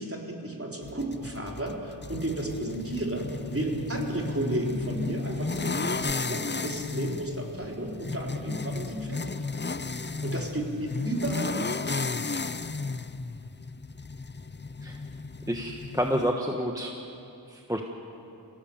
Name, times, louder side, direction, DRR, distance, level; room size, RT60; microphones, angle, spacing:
voice 1, 0.0-9.4 10.2-12.2, right 1 dB, 30° right, -1 dB, 4.0 m, -33 dB
sound 1, 0.8-16.3, left 3 dB, 25° left, 0.6 m, -34 dB
voice 2, 15.5-16.9 17.5-17.8, equal, 5° right, 2 dB, 1.4 m, -29 dB
25.5 x 17.5 x 7.3 m, 2.8 s
wide cardioid pair, 45°, 47 cm